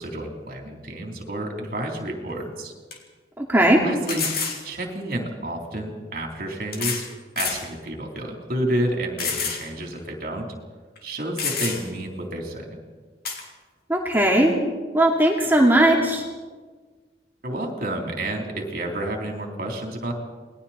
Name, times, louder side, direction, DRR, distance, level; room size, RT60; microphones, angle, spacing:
voice 1, 0.0-2.7 3.8-4.3 4.6-7.0 7.4-10.5 11.0-12.8 17.4-20.1, right 1 dB, 50° right, 1 dB, 3.7 m, -30 dB
sound 1, 2.3-2.4 2.9-3.0 4.1-4.6 5.7-5.8 6.7-7.1 7.4-7.6 8.2-8.3 9.2-9.6 10.0-10.1 11.0-11.1 11.4-12.0 13.2-13.4, left 5 dB, 55° left, 3.4 m, -28 dB
voice 2, 3.4-3.8 13.9-14.6 14.9-16.2, right 1 dB, 10° right, -1 dB, 2.6 m, -18 dB
28.5 x 20.5 x 4.4 m, 1.4 s
head